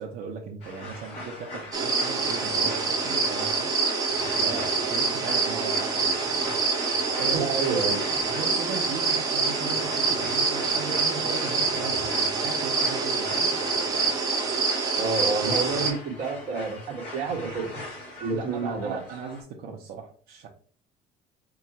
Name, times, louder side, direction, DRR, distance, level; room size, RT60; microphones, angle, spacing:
voice 1, 0.0-3.7 4.3-6.0 7.1-7.9 8.3-13.5 18.3-20.5, right 5 dB, 70° right, -1 dB, 0.8 m, -37 dB
sound 1, 0.6-19.4, left 1 dB, 40° left, 2.4 m, -40 dB
sound 2, 1.7-15.9, right 4 dB, 20° right, 0.9 m, -26 dB
voice 2, 7.3-8.0 15.0-17.7 18.2-19.0, right 4 dB, 55° right, 1 dB, 1.4 m, -29 dB
4.8 x 2.4 x 4.2 m, 0.44 s
cardioid pair, 165°, 16 cm